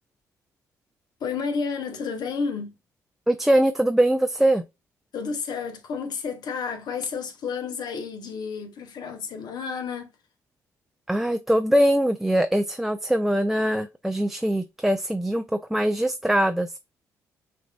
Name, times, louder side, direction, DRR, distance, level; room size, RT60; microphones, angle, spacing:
voice 1, 1.2-2.7 5.1-10.1, left 5 dB, 60° left, 0.9 m, -31 dB
voice 2, 3.3-4.6 11.1-15.4 15.7-16.8, right 1 dB, 5° right, 0.4 m, -22 dB
5.8 x 2.6 x 2.2 m
hypercardioid pair, 50°, 8 cm